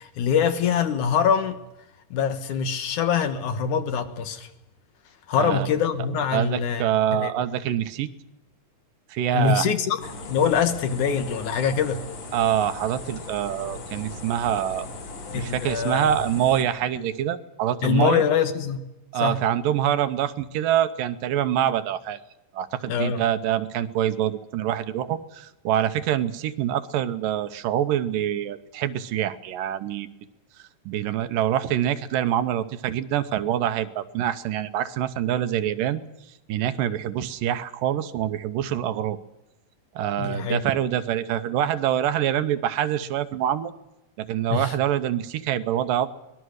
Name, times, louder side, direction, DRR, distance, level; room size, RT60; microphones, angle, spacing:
voice 1, 0.0-1.6 2.1-4.5 5.3-7.3 9.3-10.0 10.3-12.0 15.3-16.1 17.8-18.8 19.2-19.4 22.9-23.2 40.2-40.6 44.5-44.7, left 7 dB, 65° left, 2.5 m, -24 dB
voice 2, 6.3-8.1 9.1-9.7 12.3-14.9 15.3-18.2 19.1-22.2 22.5-30.1 30.9-36.0 36.5-39.2 40.0-43.7 44.2-46.1, right 11 dB, 75° right, 2.4 m, -25 dB
sound 1, 10.0-16.6, left 2 dB, 50° left, 3.8 m, -38 dB
24.0 x 20.0 x 6.5 m
omnidirectional pair, 4.0 m